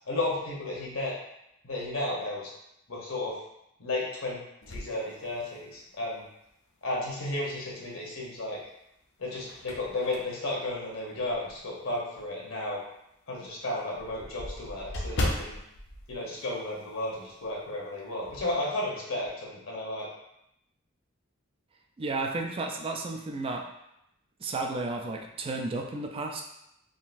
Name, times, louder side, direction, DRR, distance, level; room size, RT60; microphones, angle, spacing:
voice 1, 0.1-1.2 1.6-2.5 2.9-3.4 3.8-4.4 4.7-6.3 6.8-8.6 9.2-12.8 13.3-15.6 16.1-20.1, left 2 dB, 75° left, -4 dB, 1.0 m, -33 dB
sound 1, 4.6-5.9 6.5-6.6 8.0-8.6 9.0-11.7 12.1-12.3 12.6-12.7 13.0-13.1 13.3-17.1 17.4-17.6 17.9-18.5, left 1 dB, 55° left, 0.5 m, -37 dB
voice 2, 22.0-23.6 24.4-26.4, right 3 dB, 25° right, 2 dB, 0.3 m, -32 dB
3.7 x 2.5 x 2.5 m, 0.81 s
head